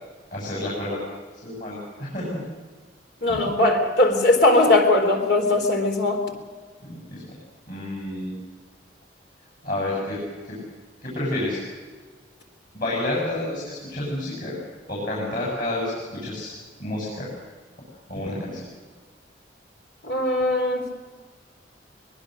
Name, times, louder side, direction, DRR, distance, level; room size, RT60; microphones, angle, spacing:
voice 1, 0.3-1.0 1.4-2.4 3.3-3.4 6.8-7.3 7.7-8.3 9.6-10.6 11.0-11.6 12.7-14.6 14.9-16.5 16.8-17.3 18.1-18.7, left 1 dB, 45° left, -5 dB, 7.4 m, -29 dB
voice 2, 3.2-6.2 20.0-20.9, left 2 dB, 60° left, 3 dB, 4.0 m, -19 dB
23.0 x 21.5 x 6.6 m, 1.5 s
head